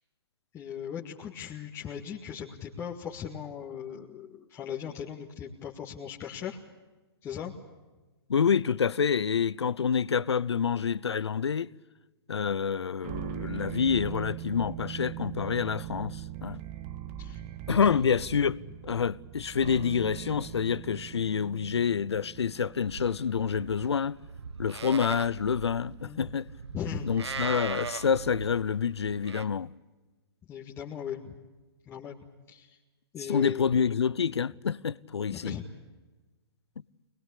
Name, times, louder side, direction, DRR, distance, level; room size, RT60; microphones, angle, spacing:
voice 1, 0.5-6.6 7.2-7.5 17.2-17.4 17.7-18.1 26.0-26.3 26.7-27.1 30.4-31.4 31.9-32.2 32.5-32.8 33.1-33.6 35.3-35.6, left 8 dB, 20° left, 1.9 m, -38 dB
voice 2, 8.3-11.7 12.3-16.6 17.7-18.6 18.8-24.2 24.6-26.5 27.0-29.7 33.3-35.5, left 6 dB, 80° left, 0.7 m, -27 dB
sound 1, 13.0-24.4, right 13 dB, 30° right, 1.0 m, -41 dB
Livestock farm animals working animals, 22.8-29.4, right 5 dB, 85° right, 1.3 m, -40 dB
24.0 x 21.0 x 8.5 m
hypercardioid pair, 135°, 14 cm